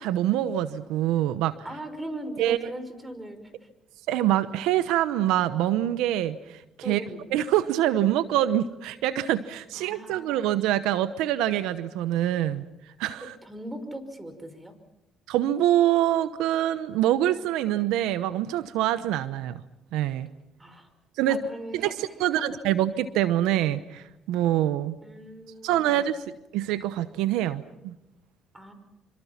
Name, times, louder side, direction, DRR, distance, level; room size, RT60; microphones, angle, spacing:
voice 1, 0.0-1.5 2.4-2.7 4.1-7.0 7.3-12.7 13.0-13.3 15.3-19.6 19.9-20.3 21.2-21.4 21.7-24.9 25.6-28.0, right 12 dB, 90° right, 13 dB, 0.9 m, -25 dB
voice 2, 1.6-3.7 6.8-7.2 9.7-10.6 13.4-14.7 20.6-20.9 21.3-21.9 22.3-22.5 25.0-26.3 28.5-28.7, right 1 dB, 15° right, 9 dB, 5.5 m, -39 dB
27.0 x 26.5 x 5.9 m, 0.89 s
supercardioid pair, 75°, 0 cm